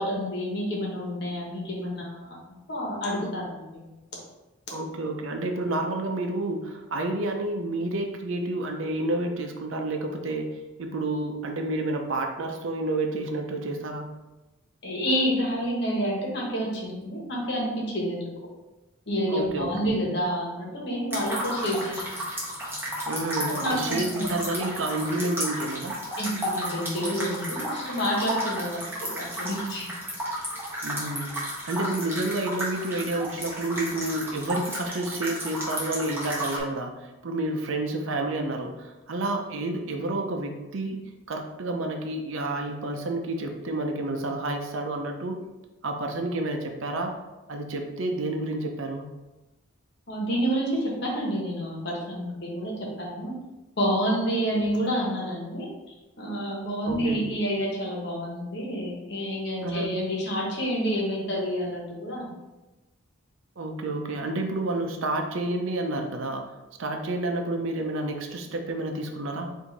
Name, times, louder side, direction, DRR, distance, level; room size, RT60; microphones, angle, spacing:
voice 1, 0.0-3.8 14.8-18.3 19.1-22.0 23.4-24.3 26.2-29.9 50.1-53.3 53.8-55.7 56.2-62.3, equal, 55° left, -3 dB, 1.2 m, -29 dB
voice 2, 4.7-10.5 10.8-14.1 19.3-20.0 23.1-26.0 30.8-36.9 37.2-41.0 41.3-45.4 45.8-47.2 47.5-49.1 54.5-54.6 56.9-57.2 59.6-59.9 63.6-66.4 66.8-69.5, right 2 dB, 75° right, 3 dB, 0.6 m, -30 dB
sound 1, 21.1-36.6, equal, 10° right, 1.0 m, -33 dB
4.6 x 2.7 x 4.0 m, 1.1 s
head